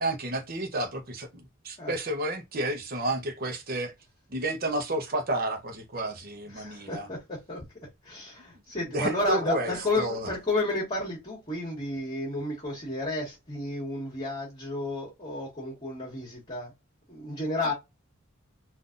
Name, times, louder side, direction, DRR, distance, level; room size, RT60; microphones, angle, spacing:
voice 1, 0.0-3.9 4.3-7.1 8.9-10.3, right 1 dB, 45° right, 0.8 m, -31 dB
voice 2, 1.8-2.2 6.4-7.6 8.0-16.7 17.1-17.7, left 2 dB, 30° left, 1.3 m, -32 dB
3.8 x 2.6 x 2.5 m
head